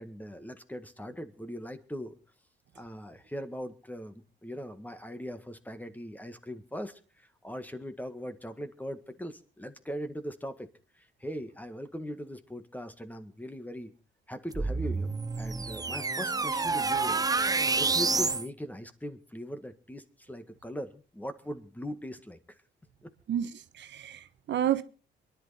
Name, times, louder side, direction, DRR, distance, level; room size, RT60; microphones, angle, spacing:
voice 1, 0.0-2.1 2.8-10.7 11.0-13.9 14.3-17.3 17.8-22.4 23.0-23.1, equal, 10° left, 1.8 m, -40 dB
sound 1, 14.5-18.5, right 3 dB, 20° right, 0.7 m, -28 dB
voice 2, 23.3-24.8, right 10 dB, 65° right, 1.1 m, -30 dB
23.5 x 11.0 x 4.2 m
cardioid pair, 90°, 20 cm